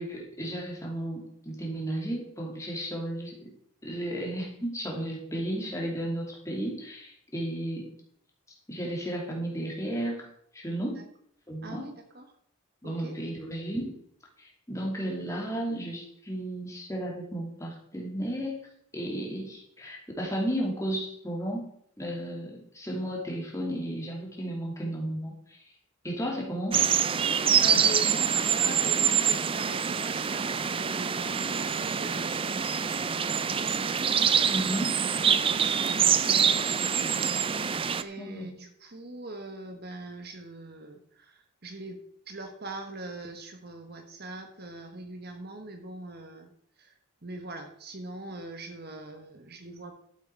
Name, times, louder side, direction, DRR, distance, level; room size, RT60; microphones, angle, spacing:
voice 1, 0.0-3.5 3.8-7.9 8.7-10.3 10.5-11.0 11.5-11.8 12.8-14.0 14.4-18.7 18.9-21.6 22.0-25.7 26.0-26.8 34.5-34.9 38.2-38.5, right 1 dB, 15° left, -1 dB, 2.7 m, -33 dB
voice 2, 11.6-12.3 12.8-13.2 27.3-34.6 35.1-37.7 38.0-49.9, right 2 dB, 45° right, 5 dB, 1.3 m, -42 dB
sound 1, 26.7-38.0, right 7 dB, 25° right, 0.4 m, -25 dB
12.0 x 8.1 x 4.7 m, 0.68 s
head